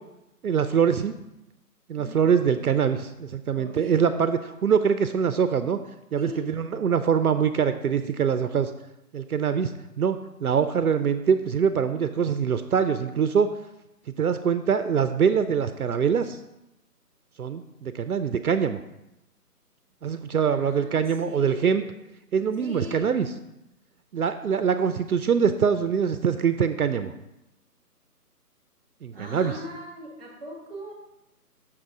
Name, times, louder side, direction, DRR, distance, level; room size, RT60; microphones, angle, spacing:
voice 1, 0.4-1.2 1.9-5.8 6.1-8.7 9.1-13.5 14.2-16.4 17.4-18.8 20.0-21.8 22.3-23.3 24.1-27.1 29.0-29.5, right 7 dB, 65° right, 10 dB, 0.5 m, -24 dB
voice 2, 3.6-4.0 6.1-6.4 20.4-21.9 22.6-23.1 29.1-30.9, right 1 dB, 5° right, -2 dB, 1.0 m, -39 dB
6.2 x 3.8 x 6.0 m, 0.91 s
figure-of-eight pair, 165°, 47 cm